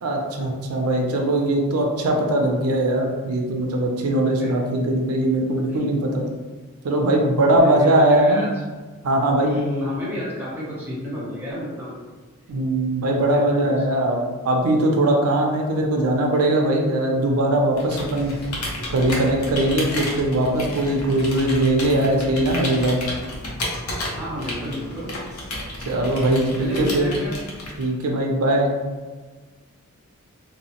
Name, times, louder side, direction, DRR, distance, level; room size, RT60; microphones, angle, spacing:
voice 1, 0.0-6.2 6.8-8.4 9.0-9.5 12.5-18.3 18.9-23.0 25.8-27.1 27.8-28.7, right 1 dB, 80° right, 1 dB, 0.5 m, -20 dB
voice 2, 7.6-8.5 9.4-11.9 13.1-13.8 24.1-25.2 26.6-27.4, left 1 dB, 10° right, -7 dB, 0.6 m, -30 dB
Computer keyboard, 17.7-28.0, left 1 dB, 80° left, 0.7 m, -32 dB
2.8 x 2.0 x 2.8 m, 1.4 s
head